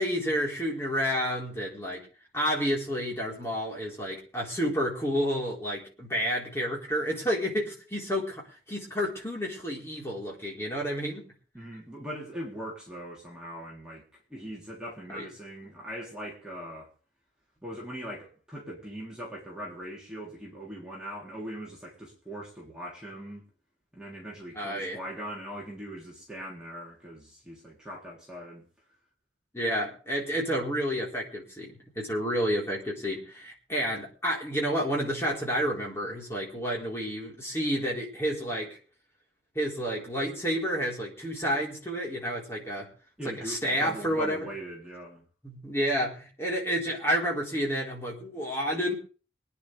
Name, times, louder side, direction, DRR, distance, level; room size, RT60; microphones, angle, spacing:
voice 1, 0.0-2.1 2.3-11.3 15.1-15.3 24.5-25.0 29.5-38.8 39.5-42.9 43.2-44.4 45.4-49.0, equal, 15° left, 4.4 m, -30 dB
voice 2, 11.5-16.9 17.6-23.4 23.9-28.7 43.2-45.2, equal, 5° right, 3.5 m, -41 dB
25.0 x 10.0 x 3.5 m
head